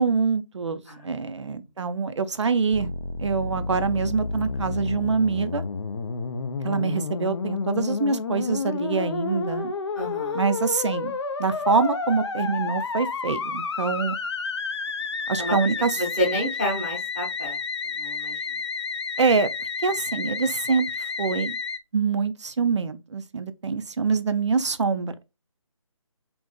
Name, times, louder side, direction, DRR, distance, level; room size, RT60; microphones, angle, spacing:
voice 1, 0.0-2.9 3.2-5.6 6.6-9.7 10.3-11.1 11.4-14.2 15.3-15.9 19.2-19.5 19.8-20.9 21.2-21.6 21.9-25.3, right 5 dB, 55° right, 0.4 m, -25 dB
Musical instrument, 2.7-21.8, left 4 dB, 50° left, 0.4 m, -30 dB
voice 2, 9.9-10.4 15.4-15.5 16.0-17.6 17.9-18.4, equal, ahead, 0.8 m, -29 dB
3.7 x 2.5 x 2.2 m
figure-of-eight pair, 160°, 18 cm